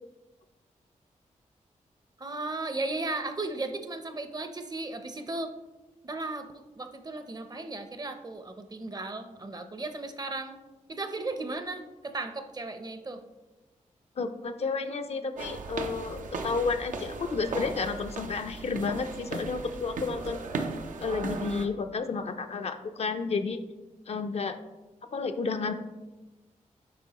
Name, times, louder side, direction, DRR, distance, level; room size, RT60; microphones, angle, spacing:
voice 1, 2.2-5.5 6.0-10.6 10.9-13.2, right 2 dB, 30° right, 8 dB, 0.6 m, -35 dB
voice 2, 14.2-20.4 21.0-23.6 24.1-24.6 25.1-25.7, left 4 dB, 55° left, 8 dB, 0.5 m, -31 dB
sound 1, 15.4-21.7, right 3 dB, 85° right, 0.6 m, -37 dB
8.2 x 5.3 x 2.9 m, 1.1 s
wide cardioid pair, 95°, 13 cm